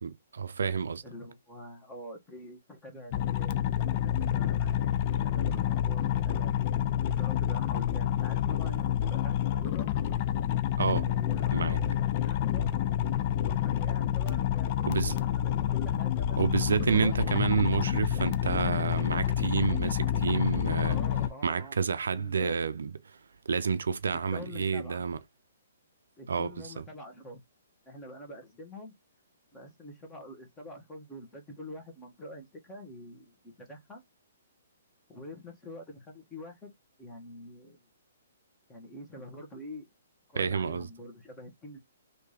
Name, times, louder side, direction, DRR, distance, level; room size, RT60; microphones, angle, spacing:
voice 1, 0.0-1.0 10.8-11.0 11.5-11.8 14.9-15.2 16.4-21.0 21.4-23.2 23.5-25.2 26.3-26.8 40.4-40.9, right 5 dB, 80° right, 0.5 m, -29 dB
voice 2, 1.0-3.7 4.0-9.9 10.9-12.0 12.2-12.7 13.5-16.4 16.7-17.2 20.8-21.8 22.1-22.7 24.1-25.0 26.2-27.4 27.8-28.9 29.5-34.0 35.1-36.7 37.0-37.9 38.7-39.9 40.3-41.8, left 1 dB, 15° left, 1.4 m, -46 dB
sound 1, 3.1-21.3, left 10 dB, 40° left, 0.4 m, -28 dB
3.3 x 2.8 x 3.4 m
hypercardioid pair, 140°, 0 cm